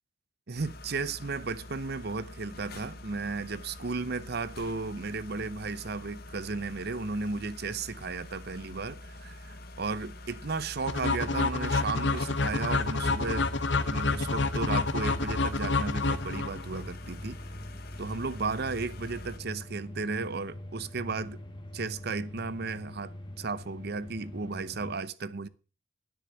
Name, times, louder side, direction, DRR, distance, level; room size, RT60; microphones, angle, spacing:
voice 1, 0.5-13.5 13.9-17.4 18.0-21.4 21.7-25.5, right 4 dB, 60° right, 0.8 m, -34 dB
sound 1, 0.6-19.4, left 1 dB, 55° left, 1.5 m, -45 dB
sound 2, 10.9-16.8, left 3 dB, 70° left, 1.2 m, -28 dB
sound 3, 12.5-24.9, left 1 dB, 25° left, 1.8 m, -44 dB
10.0 x 9.7 x 6.6 m
head